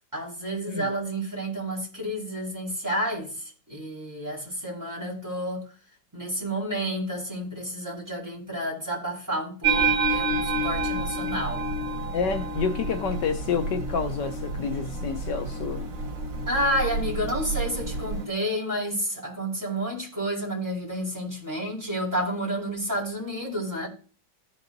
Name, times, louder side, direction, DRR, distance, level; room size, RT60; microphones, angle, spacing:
voice 1, 0.1-5.6 6.1-11.6 16.5-23.9, equal, 10° right, 4.4 m, -30 dB
sound 1, 9.6-18.3, right 3 dB, 90° right, 2.1 m, -29 dB
voice 2, 12.1-15.8, left 5 dB, 75° left, 1.5 m, -29 dB
17.5 x 5.8 x 2.6 m
omnidirectional pair, 1.9 m